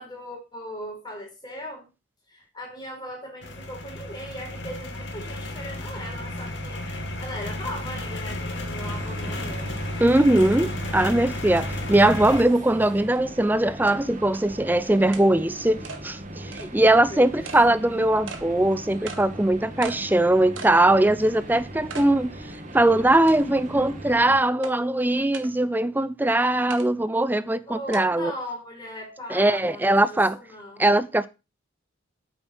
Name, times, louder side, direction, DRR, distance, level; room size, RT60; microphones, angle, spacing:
voice 1, 0.0-1.9 2.3-6.9 7.2-9.7 17.1-17.5 27.7-30.8, equal, 20° left, 4.6 m, -38 dB
sound 1, 3.4-12.4, left 1 dB, 65° left, 2.5 m, -33 dB
sound 2, 8.8-24.4, right 1 dB, 40° right, 1.9 m, -40 dB
voice 2, 10.0-28.3 29.3-30.4 30.8-31.3, right 1 dB, 10° right, 0.4 m, -21 dB
sound 3, 13.2-13.3 13.9-14.0 14.3-14.4 15.1-15.3 15.8-16.0 16.5-16.7 17.4-17.6 18.3-18.4 19.1-19.2 19.8-20.0 20.6-20.8 21.2-21.3 21.9-22.1 22.5-22.6 23.3-23.7 24.6-24.7 25.3-25.5 26.7-26.9 27.9-28.0, right 4 dB, 75° right, 1.7 m, -38 dB
9.1 x 7.2 x 6.2 m
head